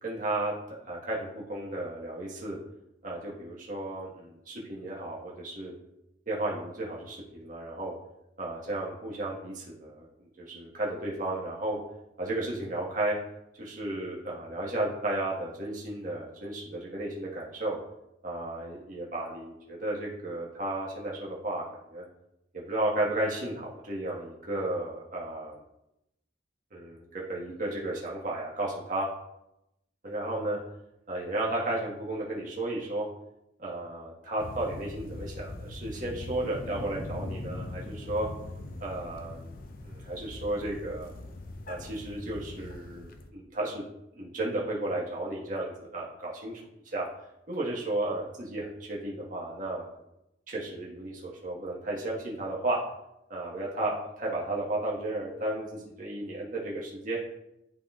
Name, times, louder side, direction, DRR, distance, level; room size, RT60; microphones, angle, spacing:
voice 1, 0.0-2.6 3.0-5.7 6.3-7.9 8.4-11.8 12.2-13.2 13.6-17.8 18.2-22.0 22.5-25.6 26.7-29.1 30.0-30.6 31.1-33.0 33.6-38.3 38.8-39.5 39.8-41.1 41.7-43.8 44.2-46.5 46.9-47.1 47.5-49.8 50.5-52.8 53.3-57.2, right 1 dB, 45° right, -4 dB, 1.4 m, -33 dB
sound 1, 34.4-43.3, left 2 dB, 50° left, 0.5 m, -41 dB
11.0 x 3.9 x 2.4 m, 0.85 s
head